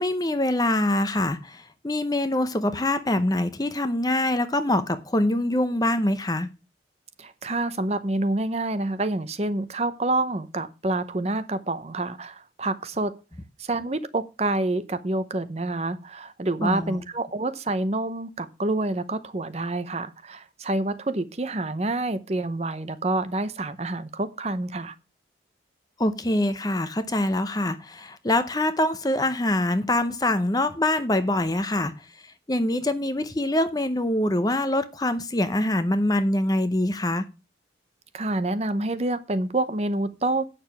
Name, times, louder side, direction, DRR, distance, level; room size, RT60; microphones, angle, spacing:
voice 1, 0.0-6.5 16.6-17.0 26.0-37.3, left 1 dB, 20° left, 0.7 m, -24 dB
voice 2, 7.2-13.2 13.6-24.9 38.1-40.4, right 2 dB, 35° right, 0.7 m, -27 dB
8.8 x 6.7 x 5.8 m
head